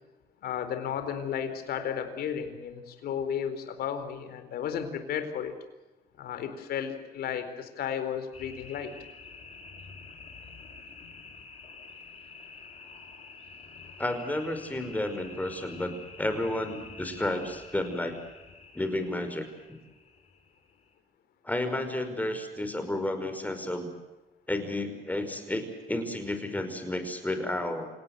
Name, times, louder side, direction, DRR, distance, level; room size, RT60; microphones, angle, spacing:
voice 1, 0.4-5.5 6.2-8.9, left 8 dB, 65° left, 9 dB, 4.3 m, -33 dB
sound 1, 8.3-20.9, left 4 dB, 40° left, 5.6 m, -48 dB
voice 2, 14.0-18.2 18.7-19.5 21.4-23.9 24.5-27.9, left 1 dB, 10° left, 8 dB, 5.4 m, -31 dB
28.0 x 18.5 x 8.0 m, 1.1 s
cardioid pair, 110°, 17 cm